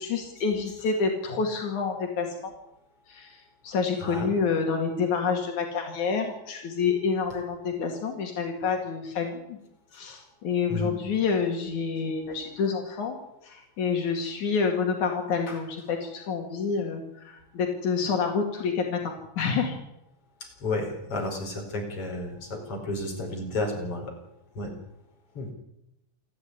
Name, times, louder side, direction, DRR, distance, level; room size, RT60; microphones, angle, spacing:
voice 1, 0.0-2.5 3.1-9.6 9.9-13.2 13.4-19.8, left 5 dB, 85° left, 3 dB, 3.8 m, -28 dB
voice 2, 4.0-4.3 10.7-10.9 15.5-15.6 20.4-24.1 24.6-24.7 25.4-25.5, left 2 dB, 50° left, 2 dB, 5.9 m, -32 dB
28.0 x 11.0 x 9.6 m, 0.83 s
omnidirectional pair, 3.3 m